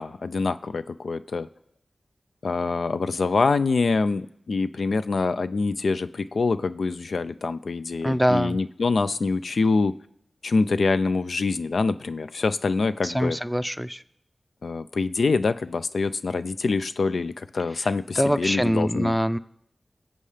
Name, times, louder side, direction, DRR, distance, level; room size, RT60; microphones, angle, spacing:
voice 1, 0.0-1.5 2.4-10.0 10.4-13.4 14.6-19.1, left 4 dB, 80° left, 12 dB, 0.4 m, -25 dB
voice 2, 8.0-8.6 13.0-14.0 17.8-17.9 18.2-19.4, equal, ahead, 13 dB, 0.5 m, -24 dB
22.0 x 7.6 x 3.3 m, 0.74 s
cardioid pair, 45°, 0 cm